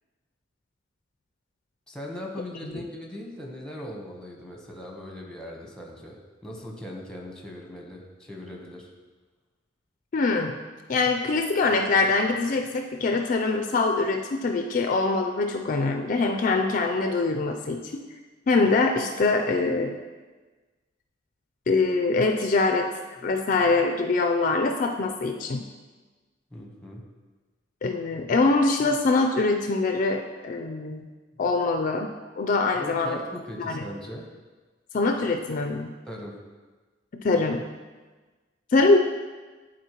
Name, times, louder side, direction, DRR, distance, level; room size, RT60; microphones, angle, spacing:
voice 1, 1.9-8.9 23.2-23.3 26.5-27.1 32.7-34.3 36.1-36.4, left 1 dB, 5° left, -1 dB, 0.9 m, -39 dB
voice 2, 10.1-10.6 10.9-18.0 18.5-19.9 21.7-22.9 23.2-25.6 27.8-31.1 31.4-33.2 33.6-33.8 34.9-35.9 37.1-37.7 38.7-39.0, left 3 dB, 45° left, 4 dB, 0.4 m, -24 dB
11.0 x 4.2 x 2.9 m, 1.3 s
head